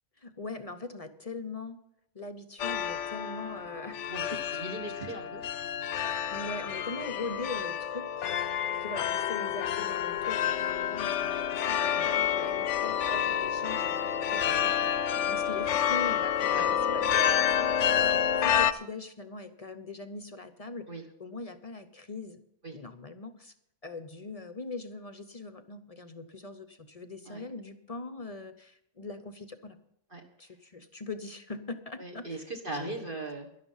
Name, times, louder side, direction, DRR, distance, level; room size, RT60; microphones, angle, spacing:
voice 1, 0.2-1.8 2.1-4.0 4.3-4.6 4.9-5.0 6.3-8.3 8.8-20.9 21.2-22.4 22.7-23.5 23.8-29.8 30.4-32.5 32.8-33.1, left 3 dB, 35° left, 10 dB, 0.7 m, -41 dB
sound 1, 2.6-18.7, left 9 dB, 75° left, 0.9 m, -29 dB
voice 2, 4.5-5.4 11.9-12.1 16.5-16.7 20.9-21.0 22.6-22.7 27.2-27.4 30.1-30.2 32.0-33.5, right 2 dB, 45° right, 1 dB, 1.6 m, -39 dB
12.0 x 11.0 x 5.6 m, 0.76 s
omnidirectional pair, 1.3 m